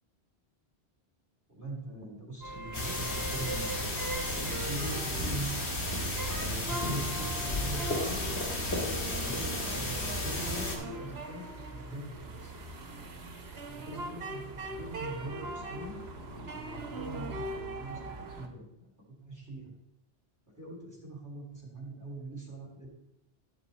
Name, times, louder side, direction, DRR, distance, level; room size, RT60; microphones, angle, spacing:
voice 1, 1.5-5.5 6.4-8.2 8.6-12.6 13.7-18.9 19.2-19.7 20.6-22.9, right 1 dB, 15° right, -4 dB, 3.6 m, -42 dB
sound 1, 2.4-18.5, right 2 dB, 70° right, 1.4 m, -41 dB
sound 2, 2.7-10.8, left 1 dB, 85° left, 2.1 m, -33 dB
12.0 x 6.1 x 4.3 m, 0.81 s
omnidirectional pair, 1.1 m